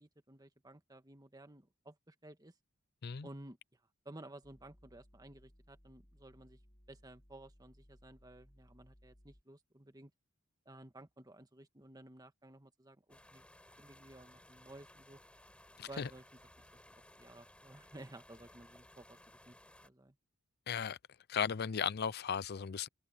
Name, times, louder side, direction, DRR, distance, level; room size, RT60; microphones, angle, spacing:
voice 1, 0.0-2.5 3.2-3.6 4.0-6.6 6.9-10.1 10.6-13.5 13.8-15.2 15.8-16.2 17.2-19.2 19.4-19.6 19.8-20.1, right 1 dB, 20° right, 1.6 m, -54 dB
sound 1, 4.4-9.4, equal, 25° left, 2.2 m, -64 dB
sound 2, 13.1-19.9, left 1 dB, 5° left, 7.5 m, -60 dB
voice 2, 15.8-16.1 20.7-21.0 21.3-22.9, left 7 dB, 50° left, 0.5 m, -36 dB
open air
head